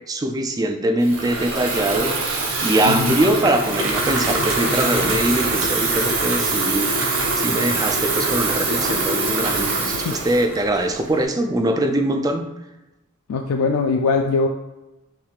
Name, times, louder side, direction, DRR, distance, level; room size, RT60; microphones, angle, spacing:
voice 1, 0.0-12.4, right 1 dB, 15° right, 5 dB, 0.3 m, -22 dB
Water tap faucet / Fill (with liquid), 1.0-11.3, right 3 dB, 65° right, 0.9 m, -23 dB
voice 2, 2.8-3.1 10.0-10.2 13.3-14.5, left 4 dB, 80° left, 3 dB, 0.4 m, -21 dB
5.5 x 3.4 x 2.4 m, 1.0 s
head